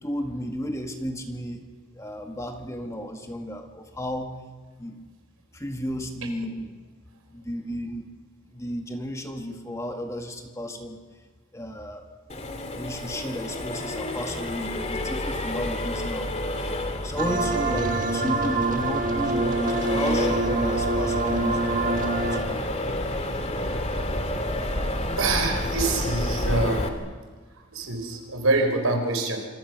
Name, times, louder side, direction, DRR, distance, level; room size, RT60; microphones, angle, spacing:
voice 1, 0.0-1.7 2.0-4.4 4.8-5.1 5.5-6.8 7.3-8.0 8.5-11.0 11.5-12.1 12.7-16.3 16.6-16.7 17.0-21.8 22.3-22.7, equal, 15° left, 4 dB, 2.0 m, -33 dB
Accelerating revving vroom, 12.3-26.9, left 1 dB, 30° left, 2.3 m, -30 dB
sound 1, 17.2-22.4, right 2 dB, 40° right, 1.6 m, -26 dB
voice 2, 25.2-27.0 27.7-29.5, right 2 dB, 80° right, 4 dB, 4.4 m, -25 dB
27.0 x 26.5 x 6.2 m, 1.4 s
head